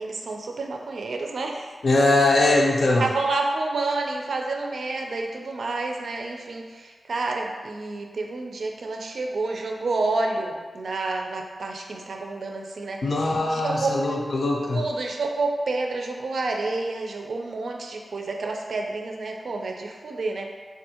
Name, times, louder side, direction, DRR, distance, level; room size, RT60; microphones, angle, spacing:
voice 1, 0.0-1.8 3.0-13.0 13.5-14.2 14.7-20.5, right 3 dB, 70° right, 2 dB, 0.4 m, -29 dB
voice 2, 1.8-3.1 13.0-14.8, left 2 dB, 60° left, -1 dB, 0.5 m, -21 dB
3.5 x 2.4 x 2.8 m, 1.5 s
wide cardioid pair, 120°, 0 cm